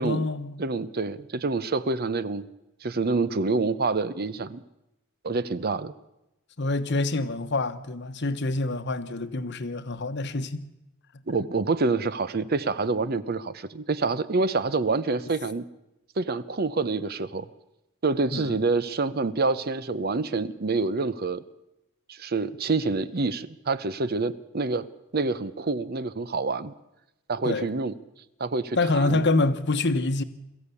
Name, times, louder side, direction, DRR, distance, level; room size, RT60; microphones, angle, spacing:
voice 1, 0.0-0.6 6.6-10.7 18.3-18.6 27.4-27.7 28.8-30.2, left 2 dB, 55° left, 1.1 m, -26 dB
voice 2, 0.6-2.4 2.8-4.6 5.2-5.9 11.3-15.6 16.2-17.4 18.0-21.4 22.1-24.9 25.1-26.7 27.3-27.9 28.4-29.2, right 3 dB, 45° right, 0.8 m, -27 dB
22.0 x 14.5 x 8.4 m
head